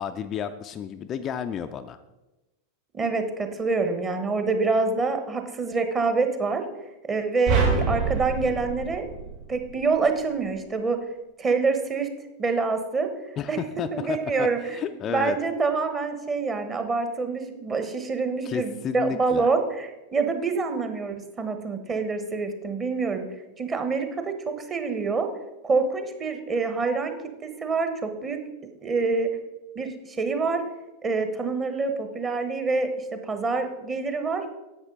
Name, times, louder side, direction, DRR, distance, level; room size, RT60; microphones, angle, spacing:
voice 1, 0.0-2.0 13.4-15.4 18.4-19.5, left 8 dB, 30° left, 8 dB, 0.4 m, -32 dB
voice 2, 2.9-6.7 7.1-9.1 9.5-11.0 11.4-12.1 12.4-13.1 13.5-13.6 13.9-23.3 23.6-25.3 25.6-27.2 27.4-28.4 28.8-29.4 29.7-30.6 31.0-32.9 33.2-34.4, right 4 dB, 20° right, 8 dB, 1.2 m, -26 dB
sound 1, 7.5-9.9, right 5 dB, 55° right, 3.9 m, -26 dB
10.5 x 8.0 x 3.8 m, 1.0 s
figure-of-eight pair, 90°, 0 cm